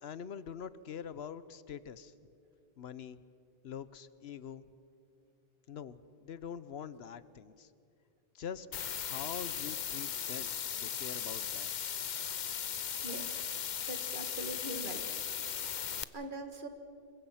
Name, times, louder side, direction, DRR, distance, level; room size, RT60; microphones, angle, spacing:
voice 1, 0.0-2.1 2.8-3.2 3.6-4.6 5.7-7.7 8.3-11.7, left 8 dB, 80° left, 15 dB, 1.0 m, -44 dB
sound 1, 8.7-16.0, left 8 dB, 50° left, 0.7 m, -37 dB
voice 2, 13.0-13.4 13.9-15.0 16.1-16.7, right 2 dB, 55° right, 6 dB, 2.0 m, -42 dB
27.0 x 23.0 x 5.7 m, 2.6 s
omnidirectional pair, 1.0 m